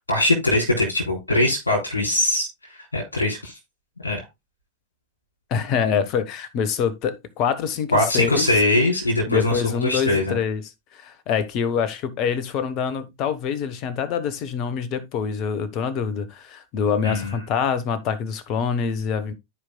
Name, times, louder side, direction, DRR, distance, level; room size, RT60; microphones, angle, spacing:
voice 1, 0.0-3.6 4.0-4.2 7.9-10.4 17.0-17.3, left 1 dB, 75° left, 3.2 m, -22 dB
voice 2, 5.5-8.6 9.3-19.3, left 7 dB, 40° left, 1.1 m, -25 dB
14.5 x 4.9 x 2.3 m
figure-of-eight pair, 90°, 0 cm